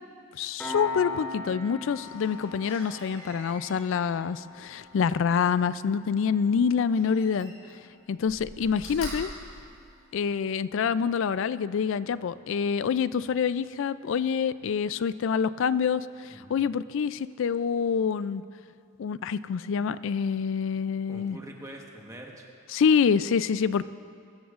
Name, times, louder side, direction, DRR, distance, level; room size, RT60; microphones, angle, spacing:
voice 1, 0.4-7.5 8.1-9.3 10.1-18.4 19.0-21.4 22.7-23.8, left 6 dB, 60° left, 16 dB, 0.3 m, -26 dB
Piano, 0.6-11.7, left 4 dB, 5° left, 2.5 m, -43 dB
Slam, 1.9-5.8 6.9-7.8 8.2-10.5 11.0-11.1, left 1 dB, 40° left, 3.2 m, -45 dB
voice 2, 16.3-16.7 21.1-22.5, right 1 dB, 15° right, 0 dB, 1.2 m, -44 dB
22.0 x 13.5 x 2.5 m, 2.3 s
head